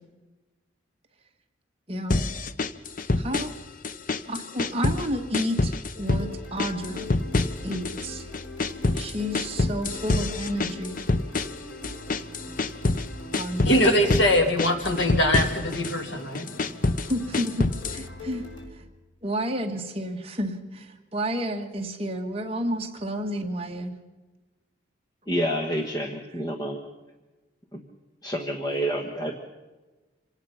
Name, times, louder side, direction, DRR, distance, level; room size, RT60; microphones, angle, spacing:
voice 1, 1.9-2.2 3.2-3.5 4.3-7.1 7.6-8.3 8.9-11.0 13.3-13.9 17.1-18.4 18.7-18.8 19.2-23.9, equal, 30° right, 3 dB, 1.6 m, -31 dB
sound 1, 2.1-3.6 3.8-5.1 5.3-6.3 6.6-8.1 8.3-13.1 13.3-14.3 14.6-16.0 16.3-18.0, left 3 dB, 45° left, 0.7 m, -26 dB
sound 2, 5.9-18.7, left 2 dB, 85° left, 5.0 m, -41 dB
voice 2, 13.7-16.5, equal, 60° left, 4 dB, 2.6 m, -22 dB
voice 3, 25.3-26.8 27.7-27.8 28.2-29.4, equal, 20° left, 4 dB, 1.2 m, -28 dB
26.0 x 18.0 x 5.8 m, 1.2 s
head